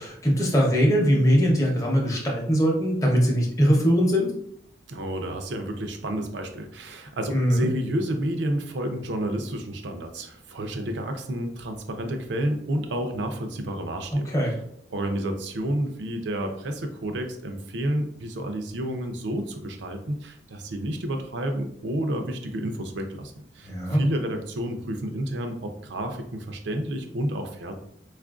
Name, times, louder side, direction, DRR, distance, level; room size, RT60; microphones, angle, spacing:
voice 1, 0.0-4.3 7.3-7.7 14.3-14.6 23.6-24.0, equal, 15° left, -2 dB, 0.7 m, -21 dB
voice 2, 4.9-14.3 14.9-27.7, right 1 dB, 75° right, 5 dB, 0.5 m, -30 dB
4.4 x 2.4 x 2.4 m, 0.71 s
head